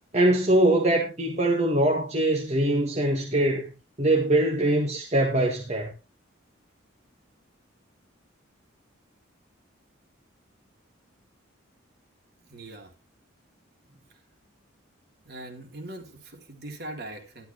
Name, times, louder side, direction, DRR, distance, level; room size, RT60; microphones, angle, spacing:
voice 1, 0.1-3.6 4.0-5.9, right 1 dB, 30° right, 1.8 m, -22 dB
voice 2, 12.4-12.9 15.2-17.5, right 1 dB, 50° right, 3.2 m, -41 dB
12.0 x 12.0 x 3.3 m
head